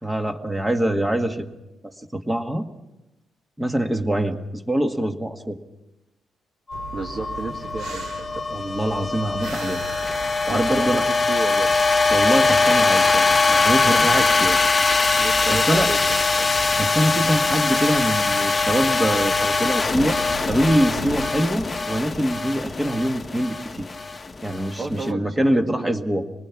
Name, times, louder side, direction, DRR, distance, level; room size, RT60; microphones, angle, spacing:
voice 1, 0.0-1.4 1.8-2.7 3.6-5.6 8.5-9.8 10.3-11.0 12.1-14.6 15.5-15.9 16.8-20.2 20.5-23.9 24.4-26.3, right 1 dB, 10° right, 5 dB, 1.8 m, -24 dB
sound 1, 6.7-25.0, left 3 dB, 25° left, 1.2 m, -22 dB
sound 2, 6.7-21.3, right 3 dB, 75° right, 3.2 m, -39 dB
voice 2, 6.9-8.4 10.5-11.8 15.2-16.5 24.8-25.9, right 3 dB, 45° right, 1 dB, 1.9 m, -33 dB
26.0 x 20.0 x 6.0 m, 0.97 s
cardioid pair, 90°, 0 cm